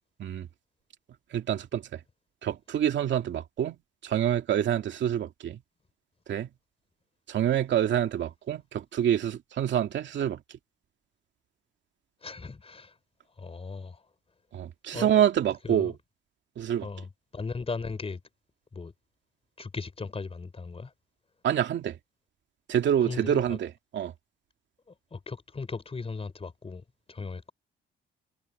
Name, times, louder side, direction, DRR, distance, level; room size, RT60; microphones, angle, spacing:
voice 1, 1.3-2.0 2.4-3.8 4.0-5.6 6.3-6.5 7.3-10.4 14.5-15.9 16.6-16.9 21.4-22.0 22.7-24.1, right 10 dB, 70° right, 2.4 m, -27 dB
voice 2, 12.2-13.0 13.4-14.0 14.9-15.2 15.6-15.9 16.8-18.2 18.7-18.9 19.6-20.9 23.0-23.6 24.9-27.5, left 4 dB, 30° left, 4.4 m, -37 dB
cardioid pair, 90°, 20 cm